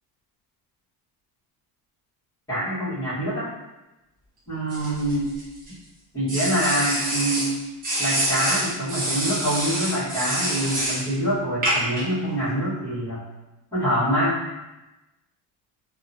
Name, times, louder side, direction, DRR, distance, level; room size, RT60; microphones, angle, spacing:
voice 1, 2.5-3.5 4.5-5.3 6.1-7.5 8.0-13.2 13.7-14.4, right 1 dB, 10° left, -14 dB, 1.2 m, -25 dB
sound 1, 4.7-5.7 6.3-7.5 7.8-11.0 11.6-12.0, right 1 dB, 20° right, 0.6 m, -26 dB
2.8 x 2.2 x 2.6 m, 1.0 s
cardioid pair, 180°, 41 cm